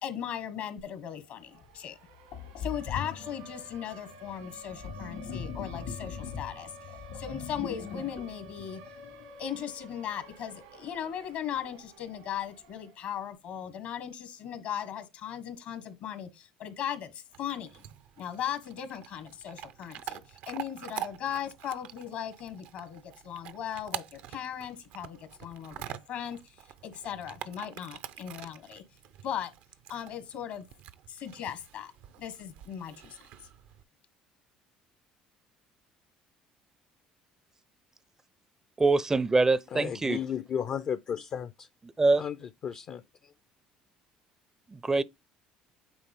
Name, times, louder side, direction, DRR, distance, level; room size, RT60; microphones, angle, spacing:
voice 1, 0.0-2.0 2.6-6.7 7.1-8.8 9.4-17.8 18.2-20.2 20.5-26.4 26.8-28.8 29.2-29.5 29.9-30.6 31.1-31.9 32.2-33.2, left 9 dB, 70° left, 1.5 m, -38 dB
Siren, 0.8-0.9 1.2-13.2, right 2 dB, 90° right, 2.0 m, -51 dB
Sink (filling or washing), 1.6-1.7 2.3-9.6, left 6 dB, 85° left, 2.7 m, -41 dB
Chewing mastication / Dog, 17.3-33.8, right 11 dB, 70° right, 0.5 m, -45 dB
voice 2, 38.8-40.2 42.0-42.2 44.7-45.0, right 3 dB, 20° right, 0.4 m, -24 dB
voice 3, 39.7-41.7 42.2-43.3, left 8 dB, 50° left, 0.5 m, -34 dB
8.9 x 3.8 x 3.6 m
hypercardioid pair, 65°, 3 cm